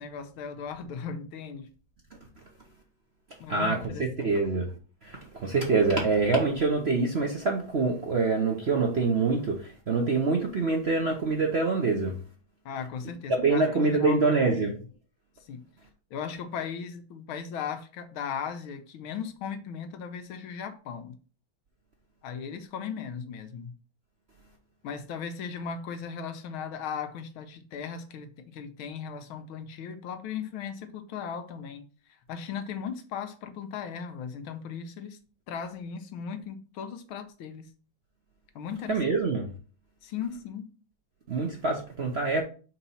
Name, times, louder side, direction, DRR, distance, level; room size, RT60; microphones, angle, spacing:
voice 1, 0.0-1.7 3.4-4.3 12.6-14.7 15.5-15.6 16.1-21.1 22.2-23.7 24.8-31.8 32.3-35.2 35.5-37.7 38.5-39.0 40.0-40.7, left 7 dB, 85° left, 1.7 m, -37 dB
voice 2, 3.5-4.7 5.0-12.2 13.4-14.7 38.9-39.5 41.3-42.4, right 3 dB, 50° right, 0.7 m, -25 dB
4.5 x 4.1 x 5.6 m
omnidirectional pair, 2.2 m